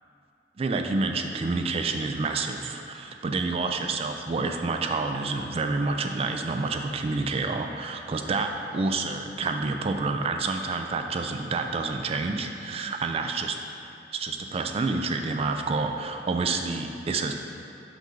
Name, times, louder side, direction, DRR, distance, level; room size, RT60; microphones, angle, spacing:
voice 1, 0.6-13.6 14.1-17.3, right 3 dB, 35° right, 5 dB, 0.3 m, -28 dB
6.1 x 3.8 x 5.6 m, 2.6 s
head